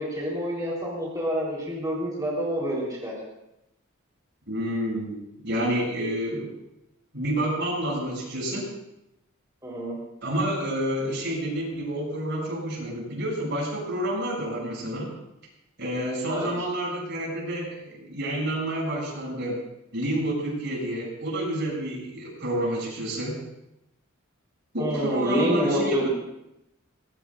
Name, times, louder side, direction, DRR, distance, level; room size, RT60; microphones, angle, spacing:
voice 1, 0.0-3.1 9.6-10.0 16.2-16.5 24.8-26.1, right 1 dB, 15° right, -5 dB, 3.9 m, -27 dB
voice 2, 4.5-6.5 7.1-8.6 10.2-15.1 15.8-19.6 19.9-23.4 24.7-26.1, right 1 dB, 55° right, -2 dB, 7.4 m, -29 dB
24.0 x 20.0 x 2.5 m, 0.87 s
head